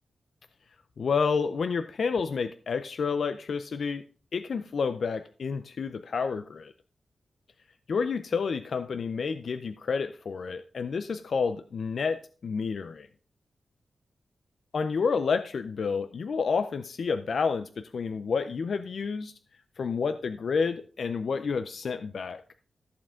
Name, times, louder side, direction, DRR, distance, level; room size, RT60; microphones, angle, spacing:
voice 1, 1.0-4.0 4.3-6.7 7.9-13.1 14.7-19.3 19.8-22.4, left 5 dB, 65° left, 10 dB, 0.5 m, -29 dB
14.0 x 7.3 x 3.7 m, 0.42 s
wide cardioid pair, 115°, 0 cm